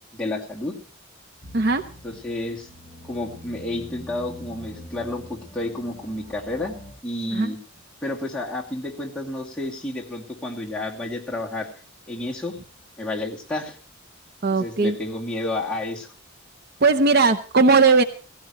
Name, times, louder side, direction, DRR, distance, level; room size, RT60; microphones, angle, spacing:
voice 1, 0.1-0.8 2.0-2.7 3.0-6.8 7.0-7.6 8.0-11.7 12.1-12.6 13.0-13.8 14.6-16.1, left 2 dB, 5° left, -4 dB, 2.4 m, -30 dB
sound 1, 1.4-6.9, equal, 20° right, 5.5 m, -44 dB
voice 2, 14.4-15.0 16.8-18.0, right 4 dB, 50° right, 8 dB, 0.7 m, -18 dB
17.0 x 16.0 x 3.1 m, 0.38 s
head